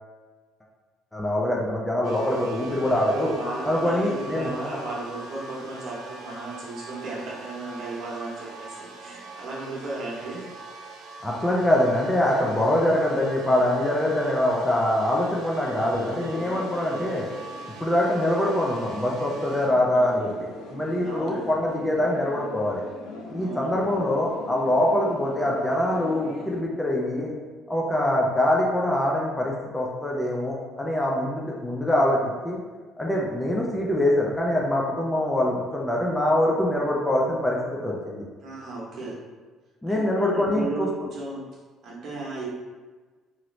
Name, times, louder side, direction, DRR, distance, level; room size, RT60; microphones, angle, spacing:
voice 1, 1.1-3.3 3.6-4.5 11.2-17.3 17.8-20.5 20.7-22.8 23.3-27.3 27.7-32.6 33.0-38.2 39.8-40.9, left 1 dB, 10° left, -3 dB, 0.4 m, -24 dB
sound 1, 2.0-19.7, right 3 dB, 85° right, 0.6 m, -42 dB
voice 2, 2.9-10.4 21.0-21.5 23.3-23.8 38.4-39.2 39.9-41.4 41.8-42.5, right 2 dB, 50° right, -5 dB, 0.9 m, -35 dB
sound 2, 15.5-26.6, left 2 dB, 80° left, 0.4 m, -41 dB
3.0 x 2.5 x 2.9 m, 1.4 s
cardioid pair, 150°, 0 cm